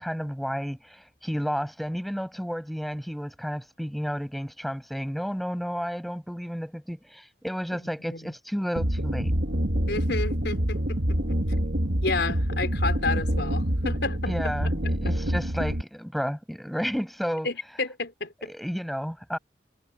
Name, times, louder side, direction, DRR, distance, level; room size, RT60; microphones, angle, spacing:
voice 1, 0.0-9.4 14.2-17.5 18.4-19.4, equal, ahead, 6.7 m, -32 dB
sound 1, 8.8-15.8, equal, 65° right, 1.9 m, -26 dB
voice 2, 9.9-11.4 12.0-15.1 17.4-18.5, left 3 dB, 65° left, 4.9 m, -31 dB
head